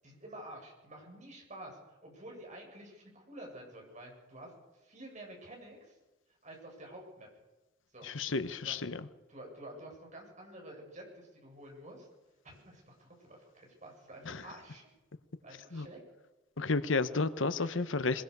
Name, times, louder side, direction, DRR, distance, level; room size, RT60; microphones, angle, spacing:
voice 1, 0.0-6.0 6.4-7.3 7.9-8.1 8.6-8.8 9.3-12.1 12.4-14.9 15.4-16.0 16.7-16.8 17.5-17.8, right 1 dB, 40° right, 0 dB, 7.8 m, -50 dB
voice 2, 8.0-9.0 14.3-14.4 15.7-15.9 16.6-18.2, left 3 dB, 75° left, 13 dB, 1.1 m, -32 dB
22.0 x 21.5 x 6.8 m, 1.1 s
head